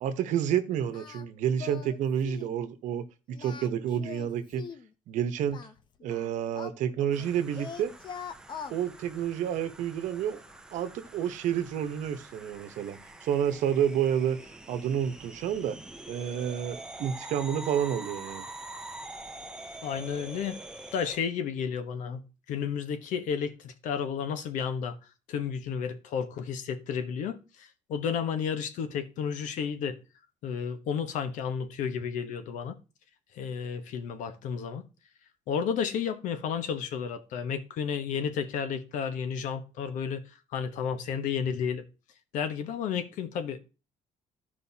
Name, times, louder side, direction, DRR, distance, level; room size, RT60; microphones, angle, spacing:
voice 1, 0.0-4.6 5.1-5.6 6.0-7.9 8.7-10.4 10.7-14.4 14.7-15.8 16.1-18.5, right 9 dB, 70° right, 1.1 m, -29 dB
Singing, 0.9-1.3 1.6-2.0 2.2-2.5 3.3-4.9 5.5-7.3 7.6-8.8, left 7 dB, 35° left, 0.7 m, -42 dB
sound 1, 7.1-21.2, right 2 dB, 5° right, 0.7 m, -45 dB
voice 2, 19.8-20.6 20.9-25.0 25.3-30.0 30.4-32.8 33.3-34.9 35.5-40.3 40.5-41.8 42.3-43.6, left 7 dB, 75° left, 1.1 m, -32 dB
14.5 x 5.1 x 2.8 m
cardioid pair, 150°, 13 cm